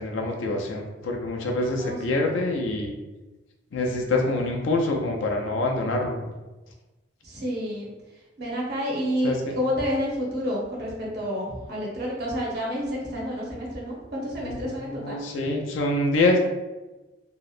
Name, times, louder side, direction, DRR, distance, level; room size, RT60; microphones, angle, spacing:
voice 1, 0.0-2.9 3.7-6.2 9.2-9.5 14.4-14.6 14.9-16.4, left 2 dB, 70° left, 1 dB, 0.4 m, -25 dB
voice 2, 7.2-7.9 8.4-15.2, equal, 55° right, -3 dB, 0.7 m, -29 dB
2.7 x 2.0 x 2.4 m, 1.1 s
head